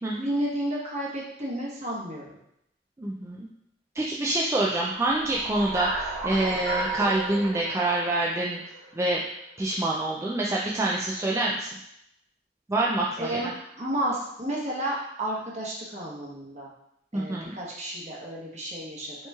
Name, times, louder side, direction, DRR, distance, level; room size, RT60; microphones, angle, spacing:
voice 1, 0.2-2.4 13.2-13.5 13.8-16.7 17.1-19.2, right 1 dB, 40° right, -4 dB, 1.0 m, -31 dB
voice 2, 3.0-3.5 3.9-8.6 8.9-9.2 9.6-11.7 12.7-13.5 17.1-17.5, right 2 dB, 15° right, -4 dB, 0.3 m, -26 dB
sound 1, 5.0-9.3, right 2 dB, 75° right, 0.8 m, -33 dB
5.3 x 3.0 x 2.3 m, 0.77 s
head